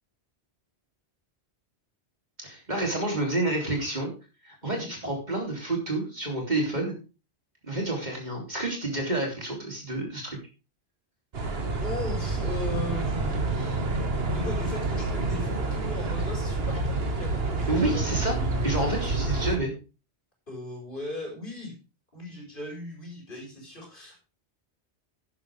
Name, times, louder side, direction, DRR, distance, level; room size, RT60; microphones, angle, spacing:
voice 1, 2.4-4.1 4.4-6.9 7.6-10.4 17.7-18.3 18.6-19.7, right 2 dB, 40° right, 0 dB, 3.5 m, -29 dB
sound 1, 11.3-19.6, right 3 dB, 65° right, 1.6 m, -28 dB
voice 2, 11.8-13.8 14.3-18.2 20.5-21.7 22.1-24.2, left 2 dB, 50° left, -1 dB, 5.4 m, -37 dB
11.0 x 10.5 x 3.5 m, 0.32 s
omnidirectional pair, 1.1 m